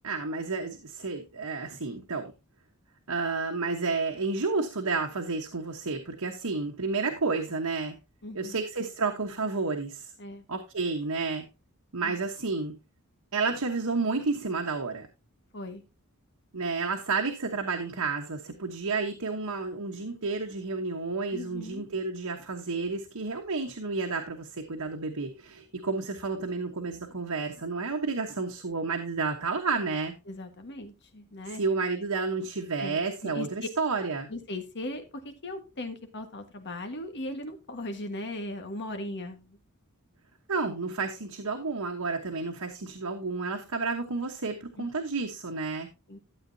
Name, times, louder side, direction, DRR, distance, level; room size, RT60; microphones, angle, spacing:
voice 1, 0.0-2.3 3.1-8.0 8.3-10.1 10.5-11.5 11.9-12.8 13.3-15.1 16.5-30.1 31.6-34.3 40.5-45.9, right 4 dB, 90° right, 2 dB, 1.2 m, -31 dB
voice 2, 8.2-8.6 10.2-10.4 12.0-12.2 15.5-15.8 21.3-21.9 30.3-31.6 32.8-33.7 34.3-39.6 40.7-40.8 44.8-44.9 46.1-46.2, left 1 dB, 55° left, 6 dB, 1.6 m, -38 dB
12.5 x 8.1 x 2.7 m, 0.27 s
head